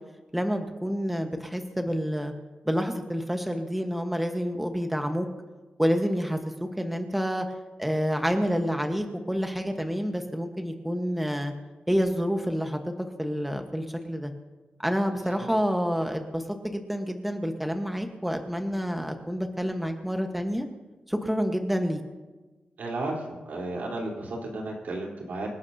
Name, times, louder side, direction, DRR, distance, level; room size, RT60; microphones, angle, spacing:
voice 1, 0.3-2.3 2.6-5.3 5.8-7.4 7.8-11.5 11.9-12.8 13.2-14.3 14.8-20.7 21.1-22.0, equal, 5° right, 4 dB, 1.2 m, -28 dB
voice 2, 22.8-23.2 23.5-25.5, right 2 dB, 75° right, -2 dB, 3.7 m, -33 dB
26.0 x 11.5 x 2.8 m, 1.2 s
cardioid pair, 85°, 3 cm